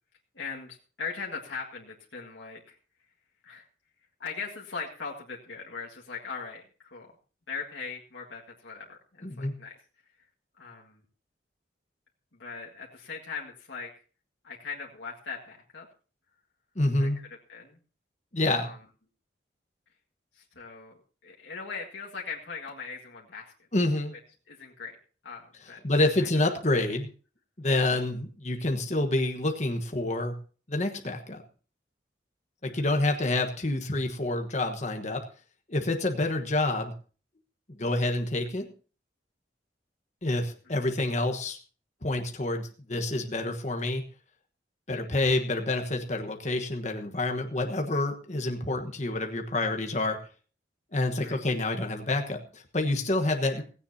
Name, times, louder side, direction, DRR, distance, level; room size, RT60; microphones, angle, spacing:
voice 1, 0.3-2.8 3.4-3.7 4.2-7.1 7.5-9.8 10.6-11.0 12.4-14.0 14.4-15.9 17.0-17.8 18.5-18.8 20.3-20.9 21.2-23.5 24.1-24.2 24.5-25.0 25.2-25.8 26.2-26.3 32.6-33.1 40.7-40.8 47.9-48.0 51.2-51.4 53.4-53.6, left 5 dB, 80° left, -1 dB, 1.9 m, -40 dB
voice 2, 9.2-9.5 16.7-17.2 18.3-18.7 23.7-24.1 25.8-27.1 27.6-30.4 30.7-31.4 32.6-35.2 35.7-36.9 37.8-38.6 40.2-41.6 42.0-44.0 44.9-50.2 50.9-53.6, left 2 dB, 40° left, 4 dB, 1.3 m, -28 dB
16.5 x 16.0 x 2.8 m, 0.37 s
head